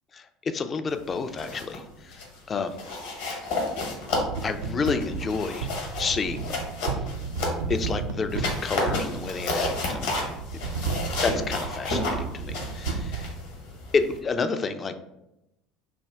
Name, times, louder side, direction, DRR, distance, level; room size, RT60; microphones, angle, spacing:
voice 1, 0.1-2.2 2.5-2.8 4.4-5.7 6.0-7.1 7.7-10.2 11.2-13.3 13.9-15.1, left 4 dB, 30° left, 9 dB, 0.3 m, -30 dB
sound 1, 1.2-1.8 2.1-2.4 2.8-7.9 8.3-14.2, left 2 dB, 65° left, 0.9 m, -31 dB
sound 2, 4.1-13.3, right 5 dB, 70° right, 0.3 m, -33 dB
3.3 x 2.1 x 3.4 m, 0.88 s
figure-of-eight pair, 65°, 0 cm